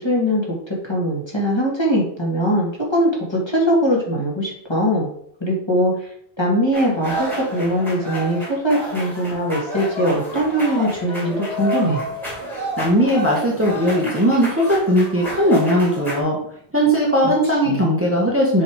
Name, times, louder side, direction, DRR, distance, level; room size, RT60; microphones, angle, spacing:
voice 1, 0.0-5.1 5.4-6.1 6.4-12.0 17.7-17.8, equal, 25° left, -4 dB, 2.0 m, -21 dB
sound 1, 6.7-16.2, right 1 dB, ahead, 2.2 m, -30 dB
voice 2, 12.8-16.4 16.7-18.6, equal, 15° right, -4 dB, 1.2 m, -18 dB
7.0 x 3.5 x 4.7 m, 0.66 s
omnidirectional pair, 1.1 m